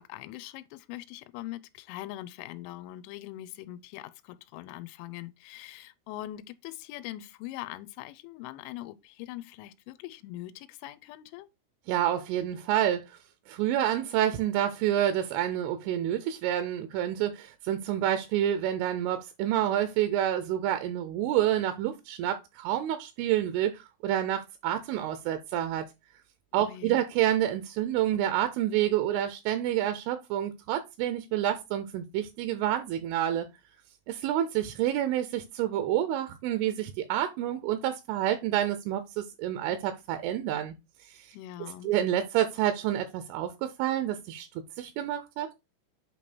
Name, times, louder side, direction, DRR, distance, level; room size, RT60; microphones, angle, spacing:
voice 1, 0.0-11.5 26.6-27.0 41.3-41.9, left 15 dB, 85° left, 3.0 m, -42 dB
voice 2, 11.9-13.2 13.5-25.9 26.5-33.5 34.1-40.7 41.0-41.4 41.8-44.5 44.8-45.5, right 11 dB, 85° right, 3.1 m, -28 dB
8.5 x 3.1 x 4.2 m
omnidirectional pair, 5.6 m